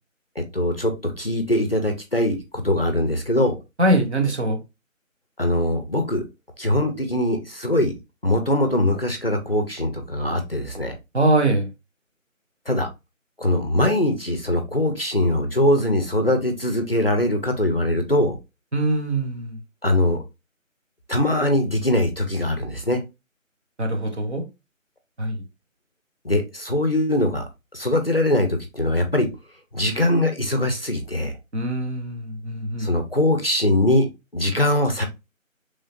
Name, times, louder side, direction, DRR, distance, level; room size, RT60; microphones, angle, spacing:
voice 1, 0.4-3.6 5.4-6.2 6.6-7.9 8.2-11.0 12.7-12.9 13.4-18.4 19.8-20.2 21.1-23.0 26.2-27.5 27.7-29.3 29.7-31.3 32.8-35.1, left 1 dB, 45° left, 0.4 m, -22 dB
voice 2, 3.8-4.6 11.1-11.7 18.7-19.6 23.8-24.4 25.2-25.4 31.5-32.9, right 1 dB, 55° right, 0.8 m, -22 dB
3.2 x 2.3 x 2.4 m
figure-of-eight pair, 165°, 40 cm